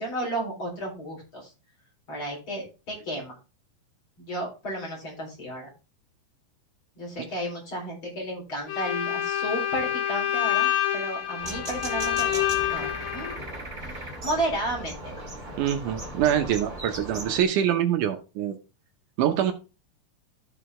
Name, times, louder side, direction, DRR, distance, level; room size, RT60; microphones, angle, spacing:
voice 1, 0.0-1.5 2.1-3.4 4.2-5.7 7.0-13.4 13.8-15.1, right 1 dB, 35° left, -3 dB, 4.7 m, -33 dB
Bowed string instrument, 8.7-13.4, left 11 dB, 85° left, 3.8 m, -27 dB
sound 1, 11.4-17.4, right 1 dB, 15° right, 2.2 m, -37 dB
voice 2, 15.6-18.6 19.2-19.5, right 10 dB, 75° right, 6 dB, 2.2 m, -24 dB
13.5 x 5.0 x 3.6 m, 0.31 s
omnidirectional pair, 3.9 m